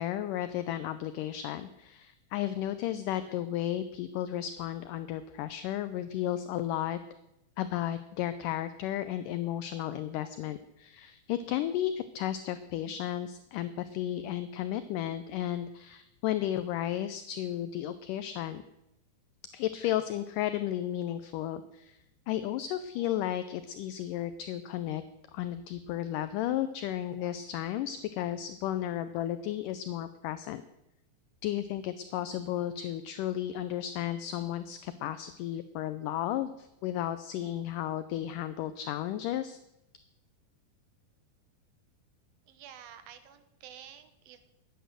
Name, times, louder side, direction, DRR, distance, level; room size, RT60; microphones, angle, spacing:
voice 1, 0.0-7.0 7.6-18.6 19.5-22.0 22.3-25.0 25.3-30.6 31.4-39.6, left 12 dB, 80° left, 12 dB, 1.9 m, -33 dB
voice 2, 42.5-44.4, right 9 dB, 75° right, 10 dB, 2.8 m, -50 dB
14.0 x 10.0 x 6.7 m, 0.86 s
omnidirectional pair, 4.3 m